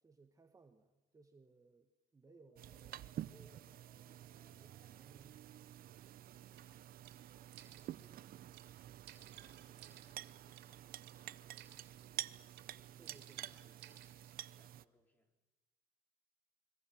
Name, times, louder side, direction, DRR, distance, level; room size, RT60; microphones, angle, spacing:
voice 1, 0.0-4.1 4.5-5.4 6.5-6.7 13.0-13.7, right 4 dB, 20° right, 6 dB, 1.5 m, -65 dB
Brass instrument, 2.3-5.0 6.6-7.1, left 3 dB, 60° left, 7.6 m, -72 dB
sound 1, 2.6-14.8, right 12 dB, 60° right, 0.8 m, -50 dB
sound 2, 6.6-6.7 7.0-7.2 7.5-8.1 8.5-8.7 9.1-10.7 11.0-11.2 11.6-12.1 12.5-12.7 13.1-14.3, right 12 dB, 80° right, 3.2 m, -58 dB
voice 2, 9.2-12.3 12.7-15.4, equal, 10° left, 4 dB, 4.5 m, -74 dB
29.0 x 22.5 x 7.2 m, 1.1 s
cardioid pair, 110°, 17 cm